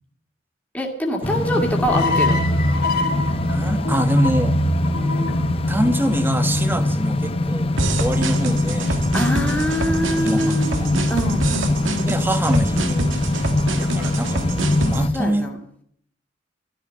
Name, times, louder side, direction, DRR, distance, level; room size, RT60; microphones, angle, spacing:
voice 1, 0.7-2.5 6.7-6.9 9.1-12.1 15.1-15.6, equal, 10° left, -1 dB, 2.2 m, -25 dB
sound 1, 1.2-15.1, left 2 dB, 30° left, 0.7 m, -23 dB
sound 2, 1.9-7.1, left 1 dB, 50° left, 2.4 m, -25 dB
voice 2, 3.5-4.6 5.7-7.7 8.0-9.0 10.2-10.9 12.1-13.1 13.8-15.5, right 1 dB, 10° right, 7 dB, 1.3 m, -24 dB
sound 3, 7.8-15.0, right 2 dB, 85° right, 1.9 m, -26 dB
13.5 x 13.0 x 6.5 m, 0.64 s
head